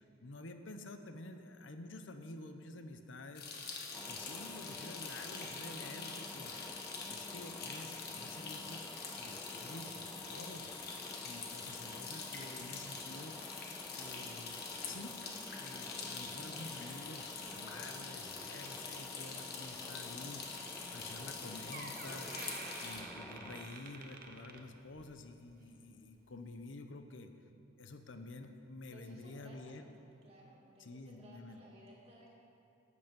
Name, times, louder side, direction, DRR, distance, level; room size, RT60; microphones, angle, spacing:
voice 1, 0.2-3.5 4.1-6.5 7.1-8.9 9.2-13.4 13.9-15.2 15.6-20.4 20.9-22.3 22.8-27.3 27.8-30.0 30.8-31.7, left 2 dB, 75° left, 7 dB, 0.8 m, -50 dB
sound 1, 3.4-23.0, left 4 dB, 50° left, 1.4 m, -45 dB
sound 2, 3.9-23.7, left 1 dB, 10° left, 0.4 m, -51 dB
Door, 21.2-21.4 21.7-25.2 25.6-25.8 26.6-26.7, right 3 dB, 45° right, 0.8 m, -49 dB
voice 2, 28.9-29.8 30.2-32.3, right 1 dB, 30° right, -4 dB, 2.2 m, -59 dB
12.5 x 8.4 x 5.3 m, 2.8 s
head